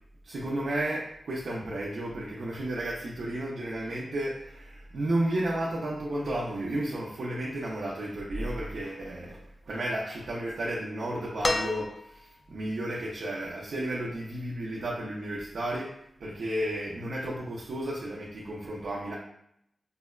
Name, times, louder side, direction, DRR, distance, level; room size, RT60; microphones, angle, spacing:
voice 1, 0.2-9.4 9.7-19.1, right 1 dB, 80° right, -4 dB, 0.5 m, -33 dB
sound 1, 11.4-12.4 14.0-14.1, left 2 dB, 35° left, 0.4 m, -31 dB
5.2 x 2.1 x 2.3 m, 0.74 s
cardioid pair, 55°, 0 cm